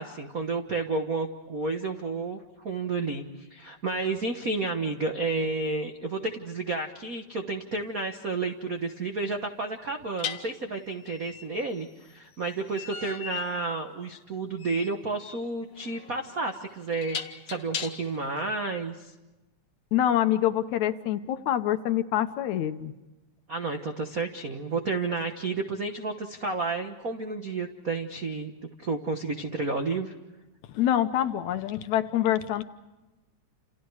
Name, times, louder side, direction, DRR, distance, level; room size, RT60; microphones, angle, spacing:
voice 1, 0.0-17.2 17.5-19.1 23.5-28.5 28.8-30.1, right 3 dB, 70° right, 4 dB, 0.8 m, -31 dB
sound 1, 7.8-7.9 10.2-18.3, left 7 dB, 55° left, 1.4 m, -39 dB
voice 2, 19.9-22.9 30.7-32.6, left 11 dB, 70° left, 10 dB, 2.1 m, -26 dB
29.0 x 28.5 x 4.8 m, 1.1 s
omnidirectional pair, 3.7 m